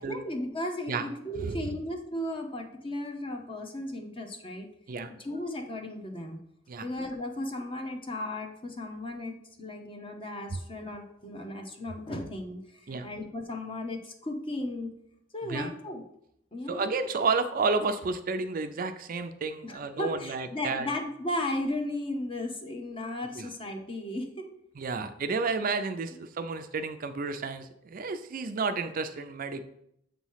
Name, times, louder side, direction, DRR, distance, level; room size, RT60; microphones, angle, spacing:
voice 1, 0.0-4.7 5.2-6.4 6.8-14.9 15.3-16.0 16.5-16.9 19.6-24.5 25.0-25.1, left 1 dB, 30° left, 4 dB, 0.9 m, -35 dB
voice 2, 15.4-15.7 16.7-20.9 23.4-23.5 24.8-29.6, right 4 dB, 45° right, 9 dB, 0.4 m, -31 dB
7.3 x 3.1 x 5.6 m, 0.75 s
head